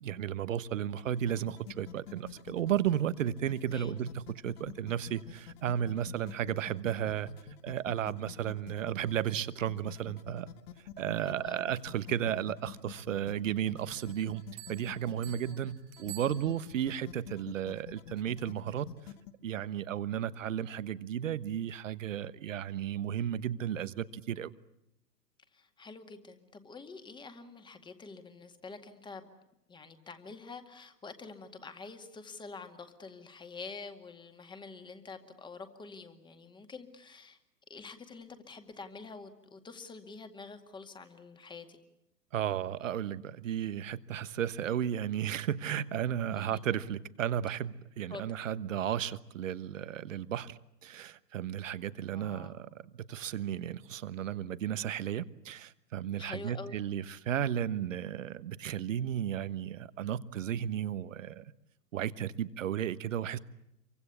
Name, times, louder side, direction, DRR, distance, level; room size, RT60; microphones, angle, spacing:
voice 1, 0.0-7.3 7.6-10.5 11.0-14.4 14.7-18.9 19.4-24.5 42.3-61.4 61.9-63.4, right 10 dB, 50° right, 1.3 m, -34 dB
sound 1, 0.9-19.3, left 10 dB, 40° left, 1.9 m, -48 dB
voice 2, 3.7-4.0 11.2-11.7 25.5-29.3 29.7-37.4 37.7-41.8 46.2-46.6 48.1-48.2 52.1-52.6 56.2-56.8, left 4 dB, 10° left, 2.1 m, -47 dB
Bell, 13.9-17.0, right 18 dB, 30° right, 1.3 m, -51 dB
28.0 x 24.0 x 8.3 m
figure-of-eight pair, 110°, 48 cm